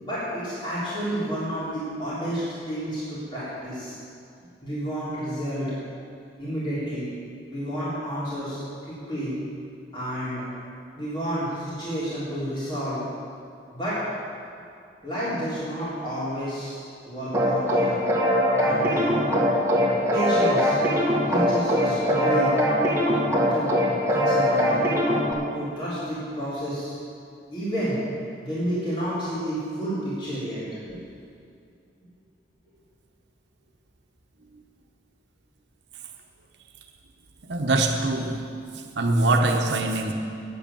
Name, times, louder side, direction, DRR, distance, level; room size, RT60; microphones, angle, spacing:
voice 1, 0.0-4.0 4.6-5.7 6.4-7.1 7.5-9.3 9.9-10.5 11.0-13.0 13.7-14.0 15.0-18.0 18.6-19.2 20.1-20.8 21.3-22.5 23.5-23.7 24.1-24.9 25.5-27.0 27.5-28.0 28.4-30.6 30.9-31.0, equal, 25° left, -11 dB, 3.6 m, -30 dB
sound 1, 17.3-25.3, equal, 15° right, 1.6 m, -22 dB
voice 2, 37.4-38.5 39.0-40.1, right 2 dB, 80° right, 2 dB, 0.9 m, -23 dB
9.8 x 8.0 x 8.7 m, 2.4 s
head